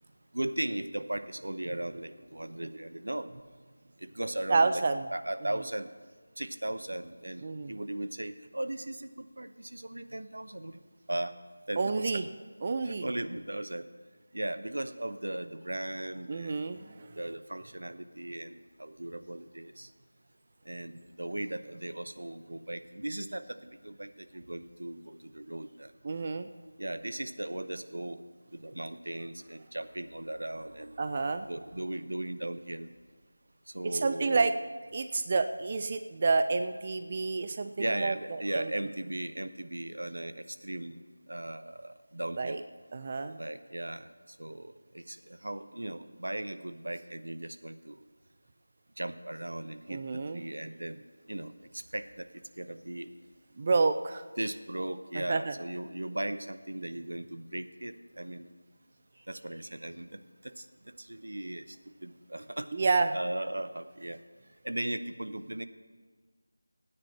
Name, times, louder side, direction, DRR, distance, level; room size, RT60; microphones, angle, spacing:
voice 1, 0.3-3.3 4.0-4.8 5.1-5.9 6.4-10.8 11.1-11.4 11.7-12.1 12.8-13.9 14.3-16.7 17.1-19.9 20.7-25.9 26.8-28.2 28.5-31.0 31.5-32.9 33.7-34.5 37.8-41.0 41.3-42.6 43.4-44.1 44.4-48.0 49.0-52.3 52.6-53.1 54.4-58.5 59.3-61.8 62.0-62.7 63.1-64.2 64.6-65.7, right 1 dB, 85° right, 11 dB, 0.8 m, -37 dB
voice 2, 4.5-5.1 7.4-7.7 11.8-12.3 12.6-13.1 16.3-17.1 26.0-26.5 31.0-31.5 33.8-34.5 34.9-38.7 42.4-42.6 42.9-43.4 49.9-50.4 53.6-54.2 55.1-55.5 62.7-63.2, right 4 dB, 25° right, 9 dB, 0.3 m, -29 dB
16.5 x 9.7 x 4.3 m, 1.5 s
figure-of-eight pair, 175°, 0 cm